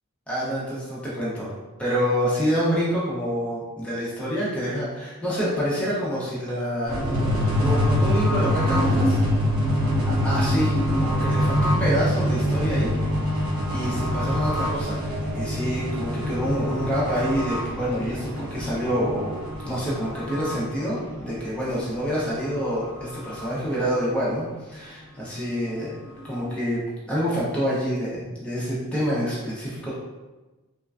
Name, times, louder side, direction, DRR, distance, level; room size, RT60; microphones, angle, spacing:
voice 1, 0.3-1.5 1.8-7.0 7.6-9.2 10.2-12.9 13.4-15.0 15.3-19.4 19.6-26.0 26.2-26.8 27.1-29.9, equal, 5° left, -8 dB, 0.6 m, -27 dB
sound 1, 6.9-22.1 22.5-22.6 22.8-23.5, equal, 80° right, 0.8 m, -25 dB
3.1 x 2.2 x 2.4 m, 1.2 s
head